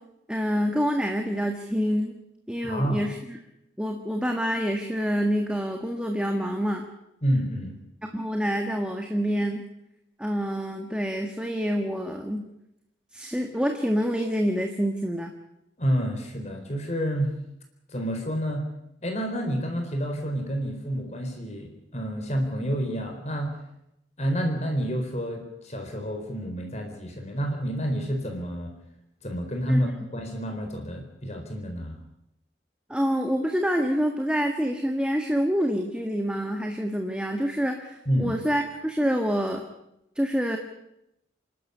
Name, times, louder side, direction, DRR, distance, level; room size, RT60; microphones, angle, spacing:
voice 1, 0.3-2.2 2.5-3.4 3.8-6.9 8.1-9.6 10.2-12.5 13.1-15.3 29.7-29.9 32.9-39.6 40.1-40.6, equal, 5° right, 3 dB, 1.6 m, -27 dB
voice 2, 2.6-3.0 7.2-7.8 15.8-17.3 17.9-18.7 19.0-23.6 24.2-28.7 29.2-32.0 38.1-38.4, equal, 35° left, 3 dB, 4.2 m, -29 dB
28.0 x 12.5 x 9.9 m, 0.85 s
head